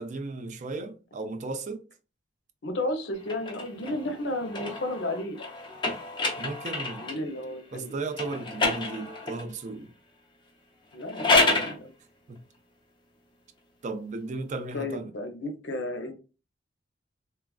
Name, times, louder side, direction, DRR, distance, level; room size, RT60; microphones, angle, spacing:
voice 1, 0.0-1.8 6.4-7.1 7.7-9.9 11.4-11.7 12.3-12.4 13.8-15.1, right 3 dB, 40° right, 0.3 m, -35 dB
voice 2, 2.6-5.5 6.9-8.0 10.9-11.9 14.7-16.2, left 1 dB, 75° left, 0.6 m, -33 dB
sound 1, 3.2-7.3 8.1-9.5 10.9-11.8, left 3 dB, 25° left, 0.6 m, -28 dB
3.2 x 2.3 x 2.3 m
head